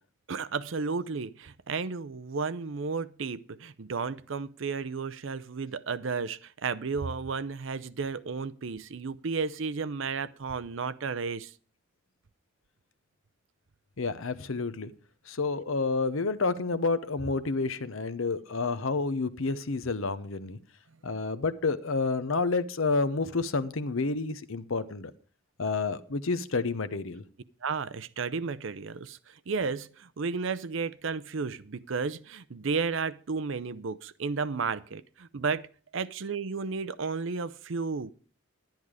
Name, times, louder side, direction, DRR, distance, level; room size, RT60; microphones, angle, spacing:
voice 1, 0.3-11.5 27.6-35.7 35.9-38.1, right 5 dB, 65° right, 0.6 m, -33 dB
voice 2, 14.0-14.9 15.3-20.6 21.0-25.1 25.6-27.2, left 3 dB, 70° left, 0.8 m, -29 dB
11.0 x 10.5 x 4.8 m
head